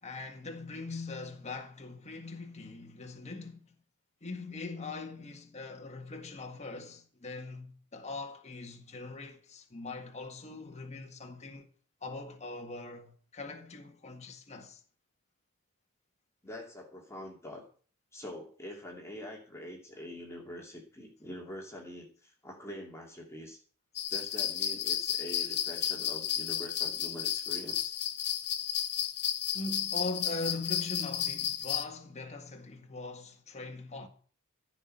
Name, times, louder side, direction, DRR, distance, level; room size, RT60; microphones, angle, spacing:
voice 1, 0.0-3.7 4.2-11.7 12.0-14.8 29.5-34.1, left 3 dB, 30° left, 1.7 m, -41 dB
voice 2, 16.4-17.6 18.1-23.6 24.1-28.0, left 1 dB, 15° left, 2.7 m, -45 dB
sound 1, 24.0-31.8, left 10 dB, 50° left, 1.3 m, -33 dB
15.0 x 6.1 x 8.9 m
head